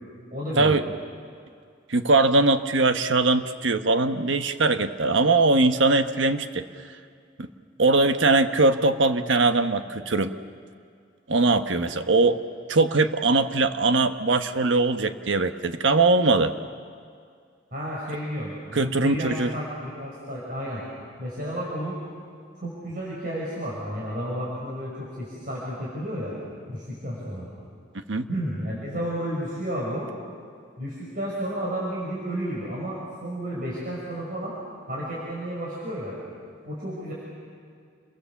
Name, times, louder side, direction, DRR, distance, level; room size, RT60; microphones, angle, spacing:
voice 1, 0.3-0.8 17.7-20.8 21.2-22.0 22.6-26.3 26.7-27.5 28.3-30.1 30.8-34.5 34.9-36.1 36.6-37.1, equal, 50° right, -6 dB, 5.7 m, -32 dB
voice 2, 1.9-6.6 7.4-7.5 7.8-10.3 11.3-12.4 12.7-16.5 18.7-19.5 28.1-28.3, right 3 dB, 85° right, 8 dB, 1.1 m, -21 dB
28.5 x 23.0 x 7.2 m, 2.2 s
head